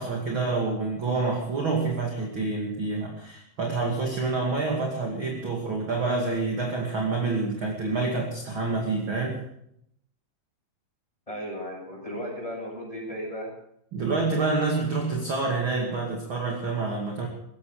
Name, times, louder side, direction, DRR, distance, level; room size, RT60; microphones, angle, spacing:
voice 1, 0.0-9.4 13.9-17.3, right 3 dB, 40° right, 0 dB, 2.8 m, -27 dB
voice 2, 11.3-13.5, equal, 10° left, -1 dB, 7.4 m, -35 dB
18.5 x 15.5 x 4.9 m, 0.74 s
omnidirectional pair, 4.1 m